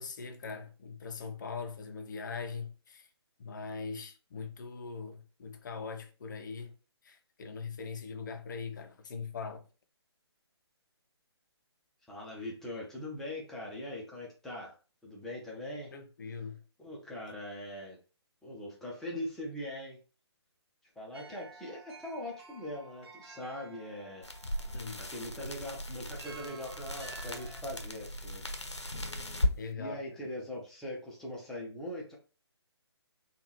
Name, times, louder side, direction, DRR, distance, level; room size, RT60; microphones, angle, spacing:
voice 1, 0.0-3.1 3.4-6.8 7.0-9.7 15.9-16.6 24.7-25.1 29.6-30.2, left 5 dB, 45° left, 0.5 m, -41 dB
voice 2, 12.1-14.7 15.0-15.9 16.8-18.0 18.4-20.0 21.0-24.2 25.0-28.5 29.7-32.2, left 1 dB, 5° left, 0.6 m, -41 dB
sound 1, 21.1-27.6, right 4 dB, 65° right, 0.6 m, -52 dB
sound 2, 24.2-29.6, left 1 dB, 90° left, 0.7 m, -36 dB
3.6 x 2.3 x 3.0 m
figure-of-eight pair, 140°, 14 cm